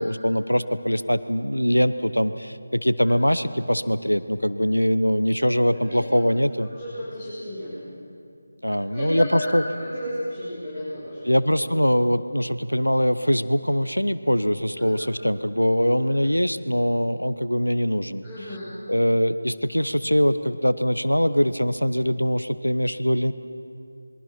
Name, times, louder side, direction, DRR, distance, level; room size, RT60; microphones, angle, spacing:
voice 1, 0.0-6.7 8.6-9.6 11.2-18.2 18.9-23.3, equal, 90° left, 13 dB, 0.9 m, -22 dB
voice 2, 6.7-7.8 8.9-11.3 14.8-14.9 18.2-18.7, left 1 dB, 5° right, -16 dB, 6.2 m, -33 dB
27.0 x 22.0 x 6.0 m, 2.5 s
figure-of-eight pair, 160°, 0 cm